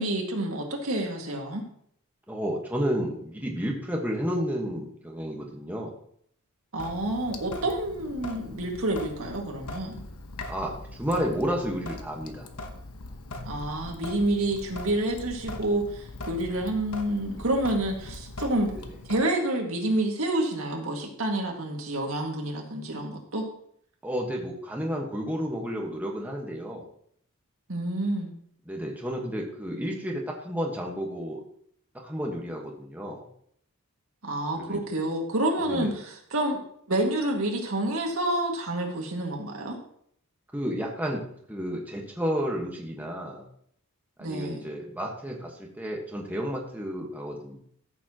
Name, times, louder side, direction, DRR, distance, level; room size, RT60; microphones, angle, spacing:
voice 1, 0.0-1.6 6.7-10.0 13.5-18.8 19.1-23.5 27.7-28.3 34.2-36.6 36.9-39.8 44.2-44.6, right 1 dB, 70° right, 1 dB, 2.0 m, -28 dB
voice 2, 2.3-5.9 10.5-12.5 24.0-26.9 28.7-31.4 31.9-33.2 34.6-34.8 35.7-35.9 40.5-41.2 41.5-43.4 44.2-47.6, equal, 10° right, -1 dB, 1.3 m, -31 dB
Sink (filling or washing) / Drip, 6.8-19.2, left 2 dB, 85° left, 1.0 m, -41 dB
14.0 x 7.1 x 2.9 m, 0.65 s
head